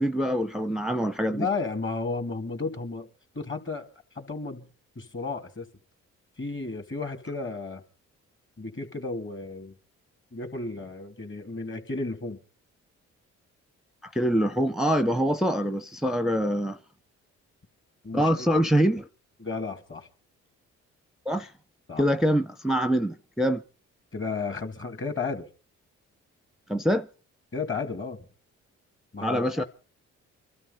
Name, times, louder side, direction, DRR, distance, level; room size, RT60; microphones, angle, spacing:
voice 1, 0.0-1.5 14.0-16.8 18.1-19.1 21.3-21.5 22.0-23.6 26.7-27.1 29.2-29.6, equal, ahead, 0.7 m, -24 dB
voice 2, 1.3-3.1 3.3-3.9 4.1-4.7 5.0-5.7 6.4-7.8 8.6-9.7 10.3-12.4 18.0-18.5 19.4-20.1 21.9-22.0 24.1-25.5 27.5-28.3 29.1-29.6, left 4 dB, 40° left, 2.7 m, -33 dB
23.5 x 12.5 x 4.1 m
cardioid pair, 70°, 31 cm